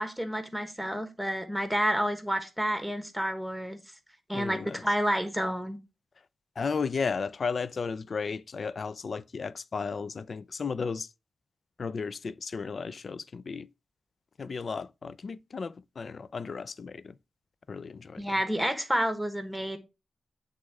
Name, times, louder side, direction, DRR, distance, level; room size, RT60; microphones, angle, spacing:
voice 1, 0.0-3.8 4.3-5.8 18.2-19.8, equal, ahead, 1.2 m, -29 dB
voice 2, 4.3-4.8 6.6-11.1 11.8-13.7 14.4-17.2 17.7-18.2, left 5 dB, 50° left, 0.4 m, -34 dB
8.3 x 3.6 x 4.7 m
wide cardioid pair, 125°, 0 cm